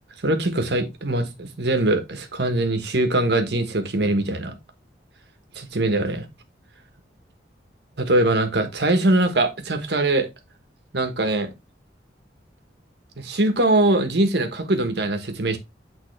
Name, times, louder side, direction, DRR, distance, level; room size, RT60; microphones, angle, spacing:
voice 1, 0.2-4.5 5.5-6.3 8.0-10.3 10.9-11.5 13.2-15.6, right 2 dB, 65° right, 1.3 m, -22 dB
8.7 x 3.6 x 3.3 m
head